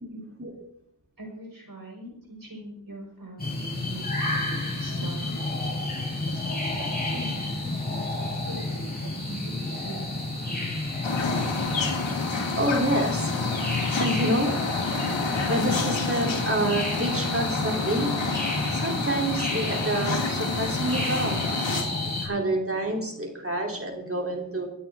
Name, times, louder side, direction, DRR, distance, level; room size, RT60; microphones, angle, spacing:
voice 1, 1.2-5.4 6.3-10.1, right 1 dB, 50° right, 0 dB, 5.7 m, -42 dB
sound 1, 3.4-22.3, left 2 dB, 20° left, 6.2 m, -30 dB
sound 2, 11.0-21.8, left 4 dB, 80° left, 2.2 m, -29 dB
voice 2, 12.5-13.6 14.0-14.7 15.5-18.1 18.7-21.4 22.2-24.7, right 1 dB, 30° right, 1 dB, 3.4 m, -28 dB
24.5 x 8.2 x 3.7 m, 0.76 s
cardioid pair, 60°, 44 cm